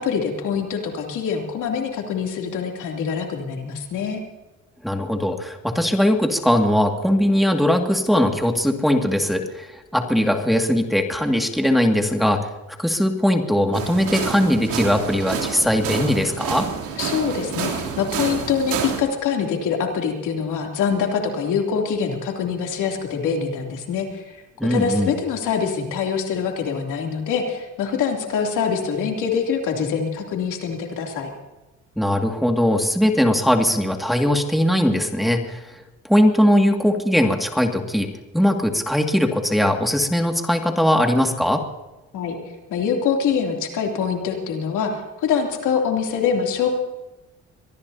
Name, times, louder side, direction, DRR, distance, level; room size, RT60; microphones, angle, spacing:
voice 1, 0.0-4.2 17.0-31.3 42.1-42.4 42.7-44.9 45.2-46.7, left 6 dB, 85° left, 2 dB, 3.0 m, -24 dB
voice 2, 4.8-12.5 12.8-16.7 24.6-25.1 32.0-35.7 36.0-41.6, equal, ahead, 3 dB, 2.1 m, -20 dB
sound 1, 13.7-19.0, right 7 dB, 90° right, 3.3 m, -28 dB
24.0 x 19.0 x 2.8 m, 1.1 s
cardioid pair, 90°, 30 cm